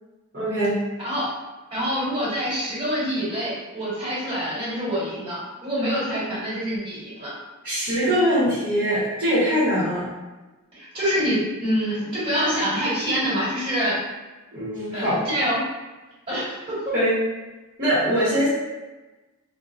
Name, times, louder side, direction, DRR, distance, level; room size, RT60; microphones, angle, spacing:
voice 1, 0.3-0.8 7.6-10.1 14.5-15.2 16.9-17.1 17.8-18.5, equal, 45° right, -11 dB, 0.9 m, -22 dB
voice 2, 1.0-1.3 1.7-7.3 10.7-14.0 14.9-15.6 16.3-16.8, equal, 25° right, -10 dB, 1.5 m, -26 dB
3.5 x 2.1 x 2.5 m, 1.1 s
head